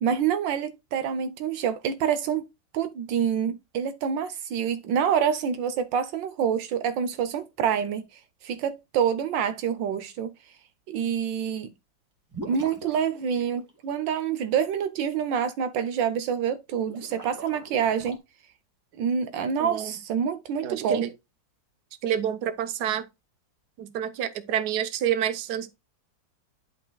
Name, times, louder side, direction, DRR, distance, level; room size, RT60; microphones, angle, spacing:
voice 1, 0.0-2.5 2.7-8.0 8.4-10.3 10.9-11.7 12.4-18.2 19.0-21.0, right 8 dB, 80° right, 1.5 m, -27 dB
sound 1, 12.3-14.1 16.8-18.2, right 2 dB, 10° right, 2.2 m, -42 dB
voice 2, 19.6-20.0 20.6-21.1 22.0-23.0 23.8-25.7, right 10 dB, 65° right, 1.4 m, -28 dB
11.5 x 5.5 x 2.3 m
omnidirectional pair, 2.0 m